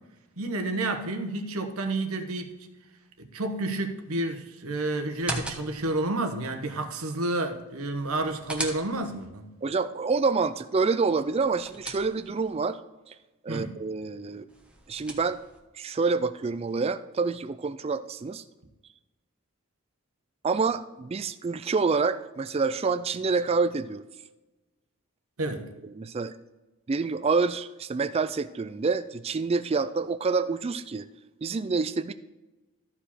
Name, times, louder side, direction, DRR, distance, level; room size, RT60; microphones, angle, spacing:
voice 1, 0.4-2.5 3.2-9.5 13.5-13.8 25.4-25.7, right 2 dB, 75° right, 6 dB, 1.2 m, -30 dB
sound 1, 5.1-6.0 8.0-9.3 11.2-12.5 14.5-15.6, right 2 dB, 5° right, 1.0 m, -38 dB
voice 2, 9.6-12.8 13.1-13.2 13.4-14.4 14.9-15.4 15.7-18.4 20.4-24.0 26.0-26.3 26.9-31.1 31.4-32.1, right 4 dB, 25° right, 13 dB, 0.3 m, -27 dB
13.5 x 5.0 x 4.3 m, 1.1 s
head